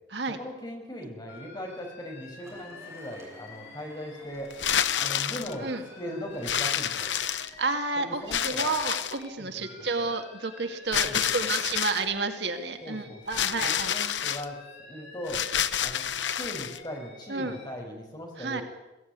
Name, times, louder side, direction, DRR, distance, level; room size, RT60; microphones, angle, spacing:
voice 1, 0.4-4.5 5.0-5.7 6.0-7.2 8.0-8.7 9.4-10.1 11.0-11.3 12.8-15.5 15.8-18.6, equal, 25° left, 1 dB, 5.7 m, -39 dB
Alarm, 1.3-5.2 5.4-9.3 9.6-13.5 13.8-17.7, left 3 dB, 65° left, 6.3 m, -49 dB
sound 1, 2.4-10.1, right 1 dB, 15° right, 5.2 m, -55 dB
sound 2, 4.5-5.5 6.4-7.7 8.3-9.3 10.9-12.1 13.3-14.4 15.3-16.8, left 9 dB, 85° left, 0.9 m, -28 dB
voice 2, 7.6-14.0 17.3-17.6 18.4-18.6, right 3 dB, 65° right, 6 dB, 2.1 m, -31 dB
22.0 x 17.0 x 9.5 m, 1.0 s
head